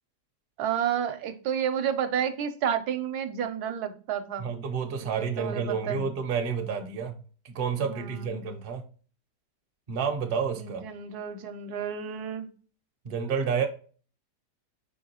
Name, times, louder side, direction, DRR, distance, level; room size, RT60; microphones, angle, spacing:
voice 1, 0.6-4.5 5.0-6.1 7.8-8.5 10.6-12.5, right 8 dB, 75° right, 1.1 m, -31 dB
voice 2, 4.4-7.1 7.4-8.8 9.9-10.8 13.0-13.7, right 6 dB, 50° right, 0.7 m, -29 dB
4.6 x 3.6 x 2.8 m
omnidirectional pair, 1.7 m